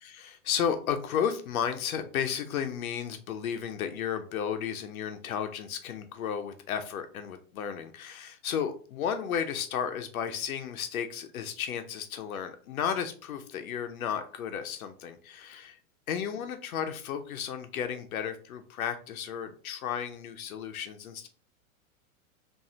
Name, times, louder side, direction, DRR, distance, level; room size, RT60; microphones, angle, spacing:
voice 1, 0.0-15.8 16.1-21.3, left 8 dB, 80° left, 7 dB, 0.7 m, -33 dB
3.7 x 2.7 x 4.3 m, 0.41 s
hypercardioid pair, 125°, 42 cm